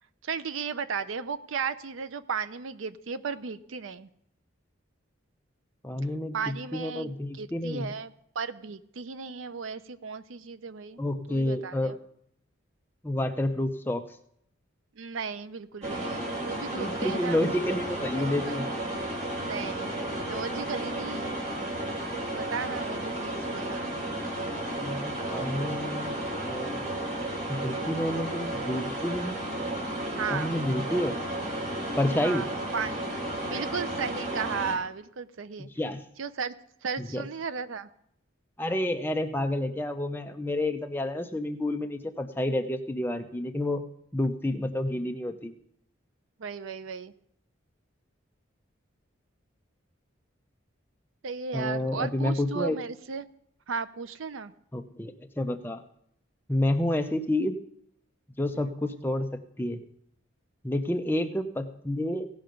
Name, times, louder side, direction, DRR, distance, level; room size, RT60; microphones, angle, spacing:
voice 1, 0.2-4.1 6.3-7.1 7.4-11.0 11.3-12.0 15.0-17.4 18.2-18.6 19.4-19.9 20.3-21.3 22.3-23.9 30.2-30.5 32.2-32.5 32.7-35.7 36.2-36.5 36.8-37.9 46.4-47.1 51.2-53.3 53.7-54.5, right 5 dB, 80° right, 13 dB, 0.5 m, -35 dB
voice 2, 5.8-7.9 11.0-11.9 13.0-14.0 16.8-18.7 24.8-26.9 27.5-29.4 30.3-31.2 32.0-32.5 35.6-36.0 37.0-37.2 38.6-43.8 44.1-45.5 51.5-52.8 54.7-55.8 56.5-57.6 58.4-59.8 60.6-62.3, left 1 dB, 10° left, 6 dB, 0.6 m, -29 dB
sound 1, 15.8-34.8, right 1 dB, 35° right, 3.0 m, -33 dB
17.0 x 5.6 x 5.2 m, 0.71 s
head